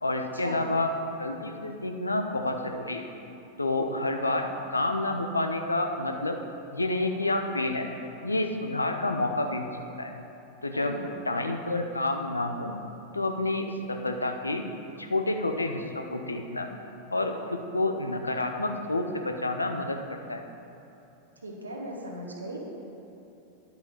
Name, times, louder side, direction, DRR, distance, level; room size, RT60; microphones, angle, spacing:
voice 1, 0.0-0.9 1.2-3.0 3.6-6.4 6.7-7.9 8.2-10.1 10.6-11.0 11.2-12.7 13.1-14.6 15.0-16.7 17.1-20.4, left 2 dB, 80° left, 5 dB, 0.7 m, -29 dB
voice 2, 10.7-11.1 21.4-22.6, right 1 dB, 75° right, -1 dB, 1.5 m, -37 dB
10.5 x 5.8 x 5.8 m, 2.9 s
figure-of-eight pair, 90°, 0 cm